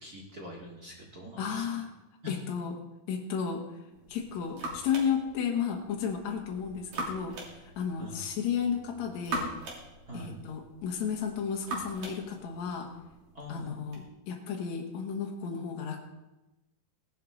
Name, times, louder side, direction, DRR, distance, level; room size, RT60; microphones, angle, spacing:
voice 1, 0.0-1.6 2.2-2.4 8.0-8.3 10.1-10.3 13.3-13.8, left 2 dB, 35° right, -2 dB, 1.5 m, -44 dB
voice 2, 1.4-1.9 2.3-2.8 3.1-3.7 4.1-9.5 10.1-13.0 13.5-16.0, left 7 dB, 60° left, 0 dB, 2.0 m, -33 dB
sound 1, 3.9-14.0, right 2 dB, 55° right, 4.2 m, -42 dB
18.0 x 11.0 x 3.8 m, 1.0 s
omnidirectional pair, 4.7 m